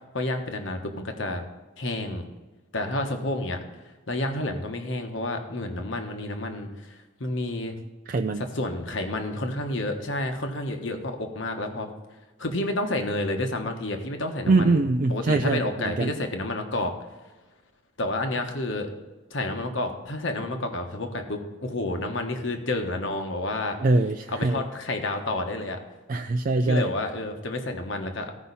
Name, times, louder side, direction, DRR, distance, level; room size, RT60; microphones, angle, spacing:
voice 1, 0.1-1.4 1.8-2.2 2.7-3.6 4.1-7.7 8.4-11.9 12.4-16.9 18.0-18.9 19.3-23.8 24.3-25.8 26.6-28.3, left 2 dB, 65° left, 5 dB, 1.3 m, -30 dB
voice 2, 8.1-8.4 14.5-16.1 23.8-24.7 26.1-26.9, right 2 dB, 40° right, 6 dB, 0.3 m, -23 dB
15.5 x 5.5 x 4.1 m, 1.2 s
head